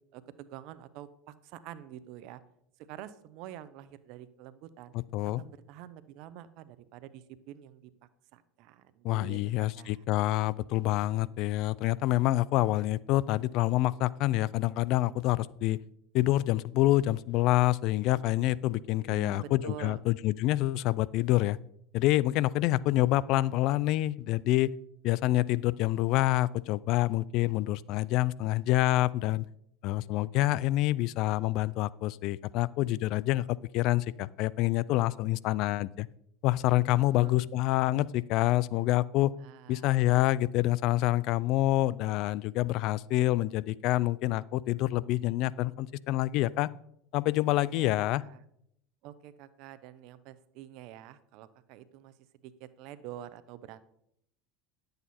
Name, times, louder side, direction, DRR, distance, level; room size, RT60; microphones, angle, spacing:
voice 1, 0.1-2.4 2.9-4.9 5.4-7.9 8.3-10.0 19.1-20.0 36.9-37.3 39.4-40.0 47.6-48.4 49.0-52.1 52.4-53.8, right 12 dB, 65° right, 14 dB, 0.7 m, -47 dB
voice 2, 9.0-15.8 16.1-21.6 21.9-24.7 25.0-29.5 29.8-36.1 36.4-39.3 39.7-46.7 47.1-48.2, left 16 dB, 60° left, 22 dB, 0.3 m, -27 dB
10.5 x 8.0 x 4.3 m, 0.75 s
supercardioid pair, 100°, 0 cm